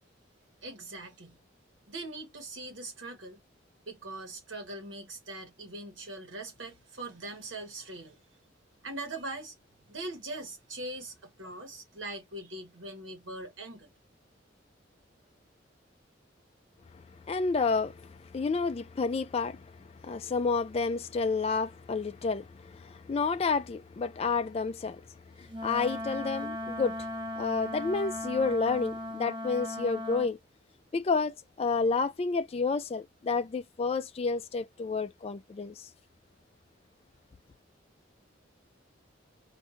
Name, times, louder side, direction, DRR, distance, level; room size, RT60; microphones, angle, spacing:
voice 1, 0.6-1.4 1.9-3.4 3.9-8.2 8.8-9.5 9.9-13.9, right 2 dB, 80° right, 1.3 m, -41 dB
voice 2, 16.9-25.0 25.4-27.1 27.4-30.4 30.9-35.9, left 4 dB, 30° left, 0.3 m, -30 dB
Wind instrument woodwind instrument, 25.5-30.3, left 1 dB, 30° right, 1.1 m, -37 dB
4.3 x 2.6 x 3.7 m
head